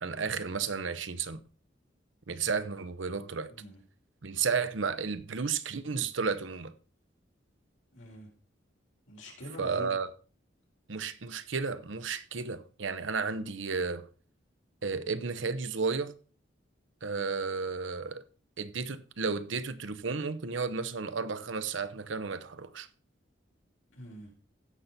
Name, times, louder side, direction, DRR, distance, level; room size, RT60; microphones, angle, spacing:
voice 1, 0.0-1.4 2.3-3.5 4.2-6.7 9.6-10.1 10.9-14.1 14.8-16.1 17.0-18.2 18.6-22.9, right 5 dB, 85° right, 0.8 m, -33 dB
voice 2, 3.5-3.8 7.9-8.3 9.1-10.0 23.9-24.3, left 1 dB, 90° left, 4.0 m, -45 dB
15.5 x 5.9 x 4.1 m
head